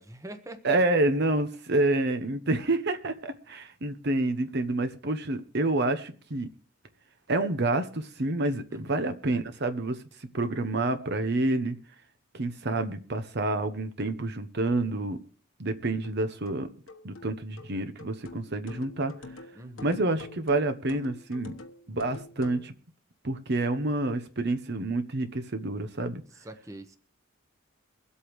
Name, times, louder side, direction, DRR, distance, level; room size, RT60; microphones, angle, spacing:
voice 1, 0.0-0.6 8.7-9.1 19.5-20.0 26.3-27.0, right 1 dB, 15° right, 1.0 m, -44 dB
voice 2, 0.6-6.5 7.3-10.0 10.3-11.8 12.3-15.2 15.6-16.7 17.0-19.1 19.8-21.6 21.9-22.7 23.2-26.2, right 2 dB, 55° right, 1.0 m, -28 dB
sound 1, 16.0-22.7, left 2 dB, 80° left, 1.3 m, -46 dB
23.5 x 8.3 x 3.2 m
head